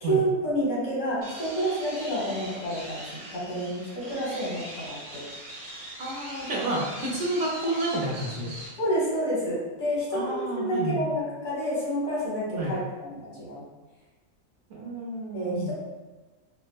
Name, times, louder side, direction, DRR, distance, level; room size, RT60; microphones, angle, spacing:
voice 1, 0.0-5.2 8.8-13.6 15.3-15.7, right 1 dB, 65° left, -7 dB, 1.5 m, -29 dB
sound 1, 1.2-8.7, right 1 dB, 80° right, 1.4 m, -41 dB
voice 2, 6.0-8.5 10.1-11.0 12.6-12.8 14.7-15.7, right 1 dB, 65° right, -4 dB, 1.0 m, -30 dB
4.2 x 2.1 x 2.2 m, 1.2 s
omnidirectional pair, 1.4 m